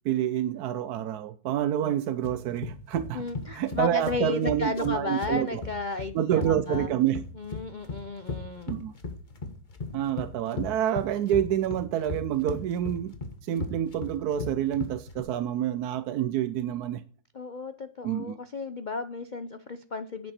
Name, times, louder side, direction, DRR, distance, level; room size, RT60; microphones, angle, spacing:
voice 1, 0.0-3.2 3.5-5.6 6.1-7.2 8.7-8.9 9.9-13.1 13.4-17.0 18.0-18.3, right 11 dB, 65° right, 12 dB, 1.1 m, -28 dB
sound 1, 2.2-15.2, left 3 dB, 30° left, 1.4 m, -36 dB
voice 2, 3.1-6.9 7.3-8.7 17.3-20.3, left 3 dB, 90° left, 10 dB, 0.4 m, -34 dB
10.5 x 8.5 x 4.4 m, 0.42 s
omnidirectional pair, 2.0 m